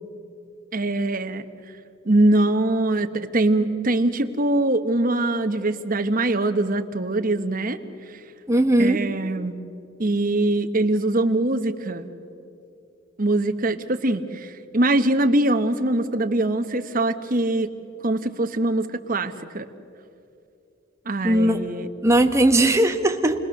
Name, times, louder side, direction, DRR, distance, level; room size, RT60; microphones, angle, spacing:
voice 1, 0.7-1.4 2.0-7.8 8.8-9.5 10.0-12.1 13.2-17.7 18.0-19.6 21.1-21.9, right 2 dB, 45° right, 7 dB, 1.1 m, -22 dB
voice 2, 8.5-9.1 21.2-21.6 22.0-23.5, right 1 dB, 15° right, 4 dB, 1.1 m, -19 dB
29.0 x 20.0 x 6.5 m, 2.6 s
head